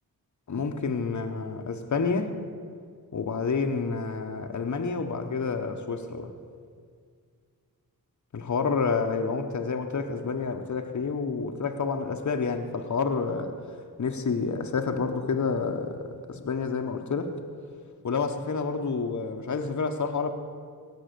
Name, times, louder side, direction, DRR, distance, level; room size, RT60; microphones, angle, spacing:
voice 1, 0.5-2.3 3.1-6.3 8.3-13.5 14.0-17.3 18.0-20.3, left 5 dB, 50° left, 1.0 m, -29 dB
18.0 x 6.1 x 6.7 m
cardioid pair, 60°, 38 cm